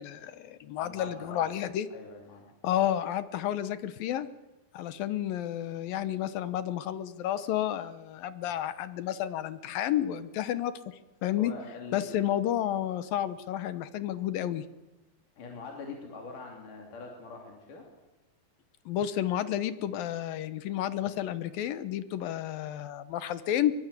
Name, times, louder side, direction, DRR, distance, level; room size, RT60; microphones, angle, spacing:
voice 1, 0.0-1.9 2.6-4.3 4.7-11.5 11.9-14.6 18.9-23.7, left 11 dB, 75° left, 13 dB, 2.7 m, -31 dB
voice 2, 0.8-1.5 1.9-2.4 11.4-12.3 15.4-17.9, left 3 dB, 60° left, 1 dB, 4.5 m, -43 dB
23.0 x 23.0 x 8.4 m, 1.1 s
omnidirectional pair, 4.2 m